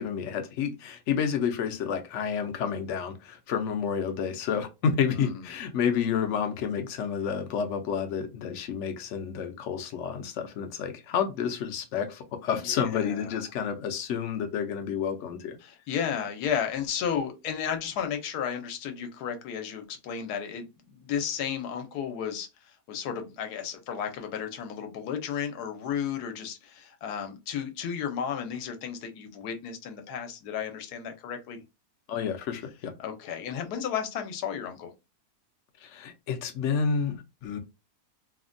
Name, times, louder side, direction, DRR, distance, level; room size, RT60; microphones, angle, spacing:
voice 1, 0.0-15.6 32.1-32.9 35.8-37.6, left 7 dB, 65° left, 0.7 m, -30 dB
voice 2, 12.6-13.4 15.6-31.6 33.0-34.9, left 8 dB, 80° left, 1.2 m, -33 dB
3.3 x 2.1 x 2.5 m
omnidirectional pair, 1.7 m